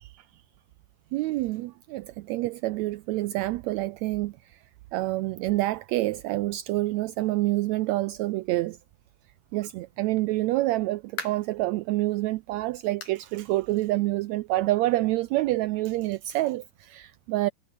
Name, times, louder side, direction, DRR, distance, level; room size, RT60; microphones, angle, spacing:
voice 1, 1.1-4.3 4.9-8.8 9.5-17.5, right 18 dB, 85° right, 1.6 m, -27 dB
sound 1, 10.8-11.6 12.1-12.2 13.0-13.3 13.6-13.7 14.2-14.3 15.4-15.5, left 5 dB, 90° left, 6.1 m, -40 dB
omnidirectional pair, 3.7 m